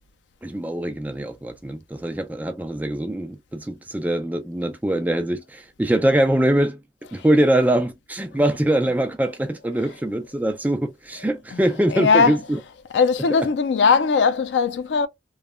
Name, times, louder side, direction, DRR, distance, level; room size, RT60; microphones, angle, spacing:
voice 1, 0.4-6.8 7.1-12.6, right 1 dB, 10° right, 0.3 m, -23 dB
voice 2, 11.9-12.4 12.9-15.1, left 5 dB, 90° left, 0.4 m, -19 dB
3.1 x 2.1 x 2.2 m
head